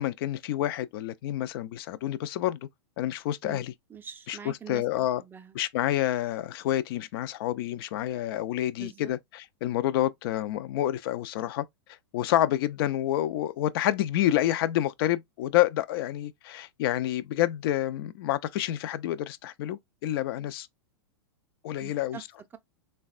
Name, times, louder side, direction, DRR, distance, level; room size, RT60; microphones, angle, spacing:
voice 1, 0.0-2.7 3.0-3.7 4.3-5.2 5.5-11.6 12.1-20.7 21.6-22.2, left 13 dB, 55° left, 0.4 m, -28 dB
voice 2, 3.9-5.6 8.8-9.1 21.8-22.2, right 8 dB, 15° right, 0.4 m, -44 dB
3.3 x 2.2 x 2.4 m
hypercardioid pair, 110°, 14 cm